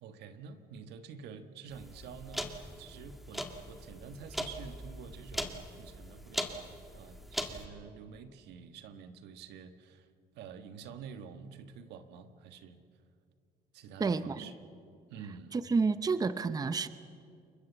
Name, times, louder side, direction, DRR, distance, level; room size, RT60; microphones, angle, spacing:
voice 1, 0.0-10.1 10.3-12.8 13.7-14.5 15.1-15.5, right 6 dB, 85° right, 9 dB, 1.6 m, -48 dB
sound 1, 1.7-7.7, equal, ahead, 2.0 m, -40 dB
voice 2, 14.0-14.4 15.5-16.9, right 4 dB, 20° right, 12 dB, 0.8 m, -29 dB
29.0 x 22.5 x 7.2 m, 2.3 s
cardioid pair, 110°, 17 cm